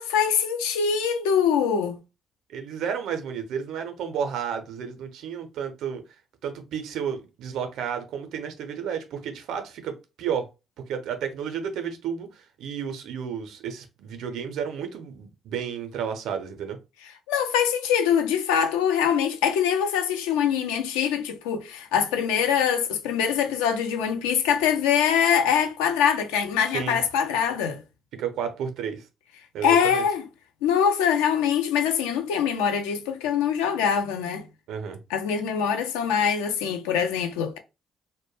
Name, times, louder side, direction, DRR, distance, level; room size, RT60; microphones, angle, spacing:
voice 1, 0.0-2.0 17.3-27.8 29.6-30.2 30.6-34.5 35.1-37.6, left 8 dB, 70° left, 0.3 m, -23 dB
voice 2, 2.5-6.0 6.4-10.5 10.9-16.8 26.7-27.0 28.1-29.1 29.5-30.0 34.7-35.0, right 7 dB, 60° right, 0.5 m, -32 dB
2.1 x 2.1 x 3.0 m
figure-of-eight pair, 45°, 0 cm